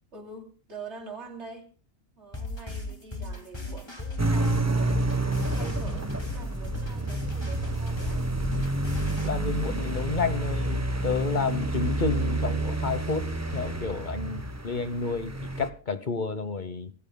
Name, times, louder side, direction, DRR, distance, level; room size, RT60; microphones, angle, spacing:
voice 1, 0.1-1.7 2.2-5.0 5.5-8.4, right 3 dB, 60° right, 3.4 m, -44 dB
sound 1, 2.3-9.3, left 2 dB, 20° left, 2.6 m, -37 dB
sound 2, 4.2-15.7, right 2 dB, 15° right, 0.8 m, -29 dB
sound 3, 8.0-13.9, equal, 70° left, 6.2 m, -42 dB
voice 2, 9.2-16.9, left 4 dB, 40° left, 1.1 m, -30 dB
26.0 x 14.5 x 2.2 m
omnidirectional pair, 1.3 m